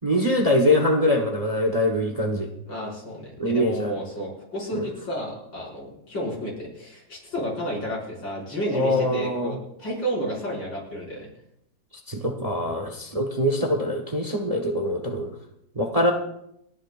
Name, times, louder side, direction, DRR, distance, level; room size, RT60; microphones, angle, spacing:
voice 1, 0.0-2.5 3.4-3.9 4.7-4.9 8.7-9.6 12.1-15.3 15.7-16.1, left 1 dB, 25° right, 3 dB, 1.0 m, -23 dB
voice 2, 2.7-11.3, equal, 85° left, -5 dB, 6.6 m, -31 dB
30.0 x 10.0 x 2.5 m, 0.76 s
omnidirectional pair, 2.0 m